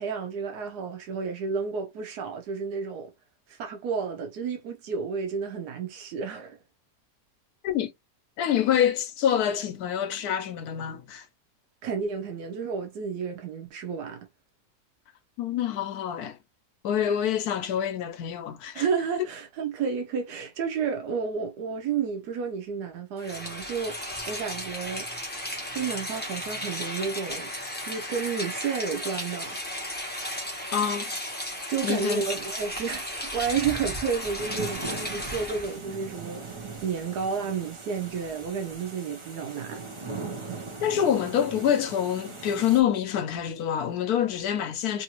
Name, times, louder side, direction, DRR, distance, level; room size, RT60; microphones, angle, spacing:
voice 1, 0.0-3.1 3.5-6.6 11.8-14.3 18.7-24.0 24.3-25.1 25.7-27.5 27.8-29.6 31.7-39.8, right 6 dB, 85° right, 1.2 m, -31 dB
voice 2, 8.4-11.2 15.4-16.4 16.8-18.8 30.7-31.1 31.8-32.2 40.8-45.0, left 9 dB, 75° left, 1.1 m, -26 dB
Rain, 23.2-35.8, left 1 dB, 10° left, 0.6 m, -34 dB
sound 1, 34.4-42.8, right 4 dB, 40° right, 0.4 m, -39 dB
3.1 x 2.7 x 2.9 m
omnidirectional pair, 1.7 m